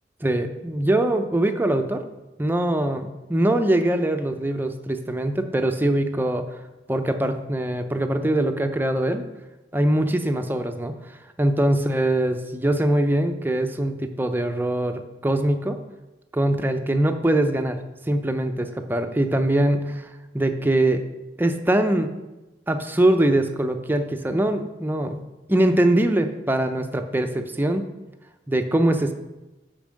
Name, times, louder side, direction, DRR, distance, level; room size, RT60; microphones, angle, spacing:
voice 1, 0.2-2.0 2.4-6.4 6.9-9.2 9.7-10.9 11.4-15.8 16.3-17.8 18.1-20.1 20.3-21.0 21.4-22.1 22.7-25.2 25.5-27.8 28.5-29.1, right 1 dB, 10° right, 7 dB, 0.5 m, -22 dB
7.1 x 5.2 x 6.4 m, 1.0 s
head